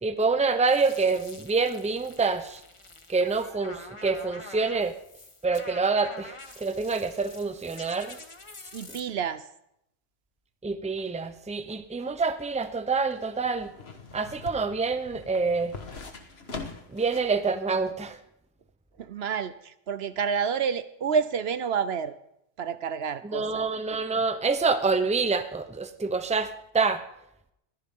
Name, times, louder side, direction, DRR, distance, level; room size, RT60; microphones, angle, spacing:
voice 1, 0.0-2.6 3.1-4.9 5.4-8.2 10.6-13.7 14.1-15.7 16.9-18.2 23.2-27.0, right 4 dB, 5° right, 9 dB, 0.7 m, -27 dB
sound 1, 0.7-9.0, left 2 dB, 30° left, 1.2 m, -46 dB
voice 2, 8.7-9.4 19.0-22.2 22.6-23.6, right 6 dB, 70° right, 13 dB, 1.0 m, -29 dB
sound 2, 12.3-17.4 17.7-17.8, left 4 dB, 65° left, 1.7 m, -42 dB
21.5 x 14.5 x 3.7 m, 0.80 s
omnidirectional pair, 1.1 m